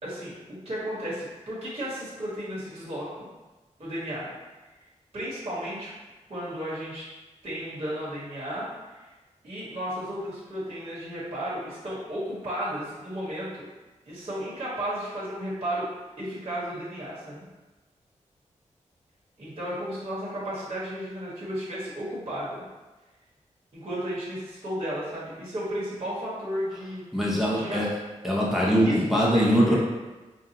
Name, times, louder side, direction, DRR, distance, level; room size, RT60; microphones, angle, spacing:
voice 1, 0.0-3.3 3.8-4.3 5.1-5.9 6.3-7.1 7.4-9.1 9.4-13.7 14.1-15.9 16.2-17.4 19.4-22.6 23.7-27.0 27.5-27.8 28.8-29.7, equal, 50° right, -9 dB, 1.2 m, -33 dB
voice 2, 27.1-27.9 28.2-29.7, equal, ahead, -6 dB, 0.7 m, -22 dB
5.3 x 2.3 x 2.8 m, 1.2 s
wide cardioid pair, 120°, 13 cm